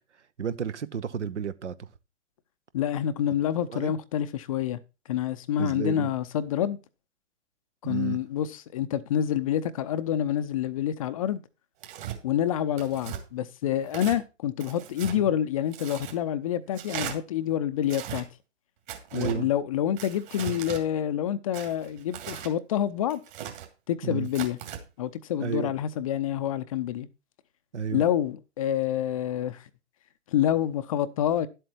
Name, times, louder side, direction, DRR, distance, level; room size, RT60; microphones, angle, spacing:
voice 1, 0.4-1.9 3.7-3.9 5.6-6.1 7.8-8.2 15.1-15.3 19.1-19.5 24.0-24.3 25.4-25.7 27.7-28.0, right 7 dB, 70° right, 1.0 m, -32 dB
voice 2, 2.7-4.8 5.1-6.8 7.8-11.4 12.2-18.3 19.1-23.2 23.9-24.6 25.0-27.1 27.9-29.7 30.3-31.5, left 10 dB, 30° left, 0.5 m, -27 dB
Tearing, 11.8-12.2 12.8-13.2 13.9-14.2 14.6-15.2 15.7-16.2 16.7-17.2 17.8-18.2 18.9-19.4 20.0-20.8 21.5-22.5 23.1-23.7 24.3-24.8, right 10 dB, 40° right, 2.7 m, -38 dB
11.0 x 7.9 x 4.5 m
figure-of-eight pair, 125°, 37 cm